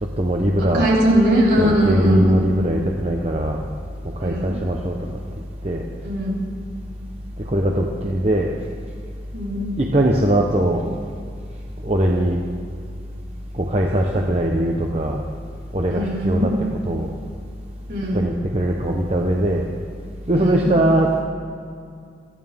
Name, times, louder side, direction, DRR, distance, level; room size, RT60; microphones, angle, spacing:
voice 1, 0.0-0.9 1.6-3.7 4.2-5.0 5.6-5.8 7.4-8.5 9.8-10.9 11.8-12.4 13.5-15.2 15.7-17.1 18.1-19.7 20.3-21.1, right 1 dB, 35° right, 0 dB, 1.0 m, -21 dB
voice 2, 0.6-2.4 4.2-4.6 6.0-6.4 9.3-9.7 15.9-16.5 17.9-18.2 20.3-20.7, equal, 60° right, -6 dB, 5.0 m, -20 dB
28.0 x 11.5 x 3.7 m, 2.3 s
head